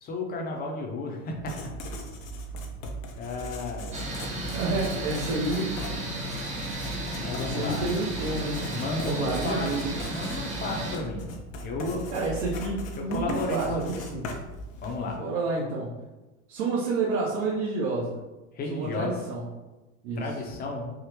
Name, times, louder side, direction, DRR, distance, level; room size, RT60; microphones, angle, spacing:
voice 1, 0.0-1.7 3.2-4.2 7.2-7.9 8.7-9.7 10.1-12.1 13.0-14.1 14.8-15.2 18.5-19.2 20.2-20.9, left 2 dB, 25° left, 1 dB, 0.6 m, -33 dB
Writing, 1.3-15.1, equal, 80° left, 0.7 m, -39 dB
sound 1, 3.9-11.0, right 1 dB, 20° right, 0.5 m, -34 dB
voice 2, 4.5-5.8 7.4-8.6 9.0-10.0 12.1-14.2 15.1-16.0 16.5-18.2 18.7-19.5 20.0-20.3, right 3 dB, 60° right, -6 dB, 0.8 m, -29 dB
3.6 x 2.0 x 2.9 m, 1.1 s
hypercardioid pair, 105°, 40 cm